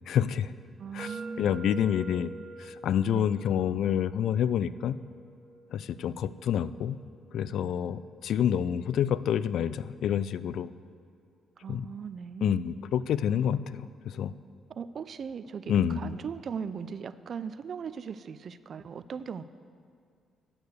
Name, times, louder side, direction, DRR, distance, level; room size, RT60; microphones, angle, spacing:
voice 1, 0.1-0.6 0.9-2.3 2.6-5.0 5.7-7.0 7.3-10.7 11.7-11.9 12.4-14.3 15.7-16.1, left 9 dB, 70° left, 16 dB, 0.3 m, -28 dB
voice 2, 0.8-1.5 3.1-3.3 11.6-12.6 14.7-19.4, right 6 dB, 55° right, 13 dB, 0.4 m, -38 dB
sound 1, 1.0-8.8, right 2 dB, 30° right, 1.0 m, -47 dB
8.7 x 6.6 x 8.1 m, 2.2 s
cardioid pair, 90°, 0 cm